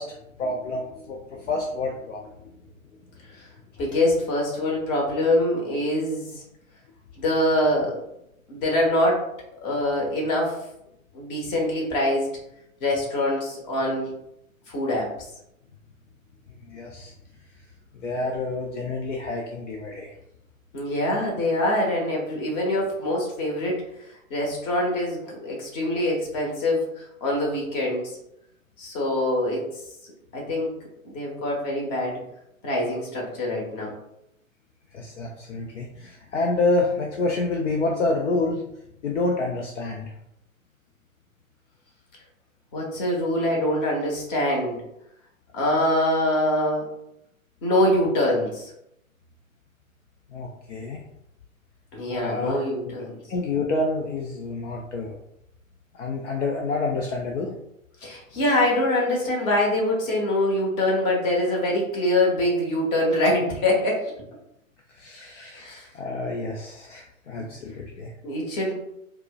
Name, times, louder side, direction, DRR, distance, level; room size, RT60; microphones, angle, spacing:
voice 1, 0.0-2.3 16.6-17.1 18.0-20.1 34.9-38.6 39.0-40.1 50.3-51.0 52.1-52.6 53.3-55.1 55.9-57.5 65.0-68.1, left 2 dB, 60° left, 0 dB, 0.6 m, -28 dB
voice 2, 3.8-6.4 7.2-8.0 8.5-9.2 9.6-10.5 11.1-12.3 12.8-14.1 14.7-15.1 20.7-23.8 24.3-28.2 28.8-29.6 30.3-30.7 31.0-32.2 32.6-33.9 42.7-44.7 45.5-46.9 47.6-48.7 51.9-53.1 58.0-64.1 65.6-65.9 67.4-67.5 68.2-68.7, left 1 dB, 30° left, -2 dB, 1.0 m, -24 dB
4.4 x 2.1 x 2.2 m, 0.80 s
figure-of-eight pair, 115°, 41 cm